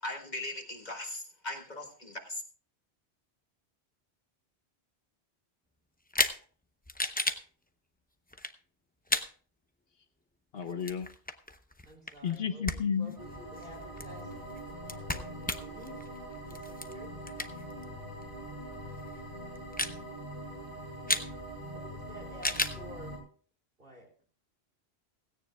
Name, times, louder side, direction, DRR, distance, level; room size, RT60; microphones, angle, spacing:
voice 1, 0.0-2.4, left 1 dB, 40° left, 3 dB, 1.8 m, -39 dB
sound 1, 6.1-6.4 6.9-7.4 8.3-8.5 9.1-9.3 10.6-12.4 12.6-12.8 13.1-17.8 18.2-18.3 19.0-19.2 19.6-20.0 21.1-21.3 22.4-22.8, left 1 dB, 10° left, 0.6 m, -33 dB
voice 2, 10.5-11.1 12.2-13.2, left 7 dB, 65° left, 9 dB, 1.0 m, -32 dB
voice 3, 11.8-16.0 16.3-17.1 21.7-23.2 23.8-24.1, equal, 55° right, 0 dB, 4.6 m, -51 dB
sound 2, 13.2-23.2, right 1 dB, 35° right, 6.5 m, -43 dB
17.0 x 16.5 x 2.3 m, 0.42 s
omnidirectional pair, 1.1 m